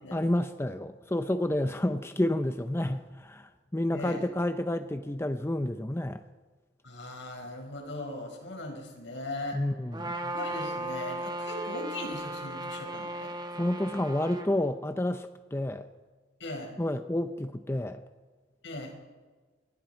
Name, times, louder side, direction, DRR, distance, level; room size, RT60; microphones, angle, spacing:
voice 1, 0.1-6.2 9.5-10.3 13.6-15.9 16.8-18.0, left 1 dB, 15° left, 0.6 m, -30 dB
voice 2, 3.9-4.3 6.8-9.6 10.3-13.3 16.4-16.8 18.6-19.0, left 1 dB, 75° left, 5.2 m, -39 dB
Trumpet, 9.9-14.5, right 1 dB, 20° right, 1.7 m, -36 dB
27.5 x 22.5 x 4.5 m
head